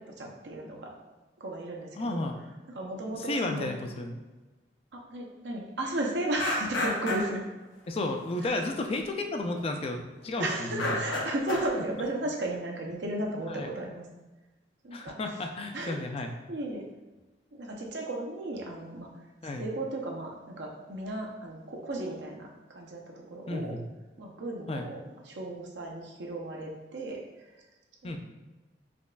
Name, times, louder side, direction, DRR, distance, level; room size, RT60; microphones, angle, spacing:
voice 1, 0.1-1.0 1.4-2.3 2.7-3.8 4.9-7.4 8.4-8.6 10.4-14.0 14.8-15.2 15.7-16.0 16.5-16.8 17.6-19.1 19.6-23.8 24.2-25.0 25.3-27.6 28.0-28.2, right 1 dB, 70° right, -1 dB, 0.6 m, -35 dB
voice 2, 2.0-2.4 3.1-4.2 7.9-11.0 13.5-13.7 14.9-16.3 19.4-19.7 23.5-23.8 24.7-24.9 28.0-28.2, left 2 dB, 30° left, 4 dB, 0.3 m, -33 dB
sound 1, 6.4-7.4 8.5-8.6 9.4-9.7 10.0-10.2 10.6-11.8, left 2 dB, 85° left, 0.6 m, -31 dB
5.1 x 2.4 x 2.2 m, 1.1 s
head